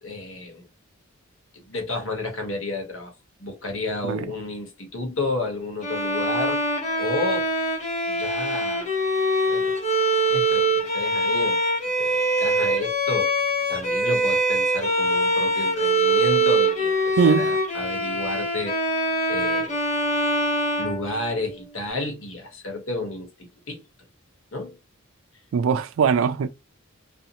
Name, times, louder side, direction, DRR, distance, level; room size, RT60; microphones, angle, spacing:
voice 1, 0.0-0.6 1.5-3.1 3.4-6.6 7.0-7.5 8.1-8.9 9.5-9.8 10.3-11.7 12.0-13.4 13.7-18.8 19.3-19.8 20.8-23.3 23.7-23.8 24.5-24.8, left 2 dB, 70° left, 1.0 m, -31 dB
Bowed string instrument, 5.8-21.7, right 1 dB, 35° left, 0.7 m, -23 dB
voice 2, 25.5-26.5, right 6 dB, 70° right, 0.3 m, -20 dB
2.6 x 2.1 x 2.7 m
head